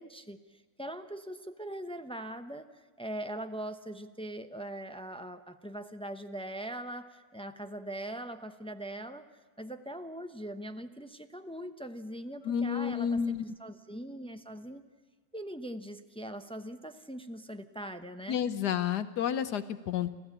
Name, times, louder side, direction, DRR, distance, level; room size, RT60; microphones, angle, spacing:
voice 1, 0.0-9.2 9.6-14.8 15.3-18.4 19.9-20.1, right 1 dB, 5° left, 8 dB, 0.4 m, -41 dB
voice 2, 12.4-13.4 18.3-20.1, left 8 dB, 70° left, 13 dB, 1.3 m, -30 dB
29.5 x 14.0 x 8.8 m, 1.5 s
omnidirectional pair, 1.9 m